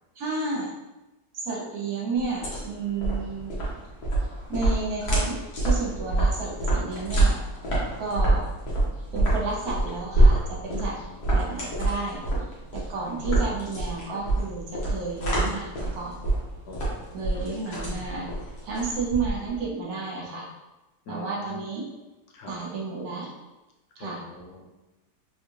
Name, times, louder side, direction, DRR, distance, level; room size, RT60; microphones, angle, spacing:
voice 1, 0.2-0.7 1.3-3.5 4.5-7.4 8.0-8.4 9.1-10.9 11.3-12.2 12.7-16.1 17.1-18.3 18.6-20.5 21.1-21.8 22.5-23.3 24.0-24.2, right 3 dB, 65° right, -3 dB, 1.2 m, -31 dB
sound 1, 2.2-19.6, right 2 dB, 65° left, 1.5 m, -26 dB
voice 2, 10.7-11.7 16.7-17.3 17.6-17.9 21.1-21.7 22.3-22.6 24.0-24.7, left 2 dB, 80° left, 0 dB, 1.3 m, -44 dB
3.9 x 2.3 x 3.1 m, 1.1 s
omnidirectional pair, 1.8 m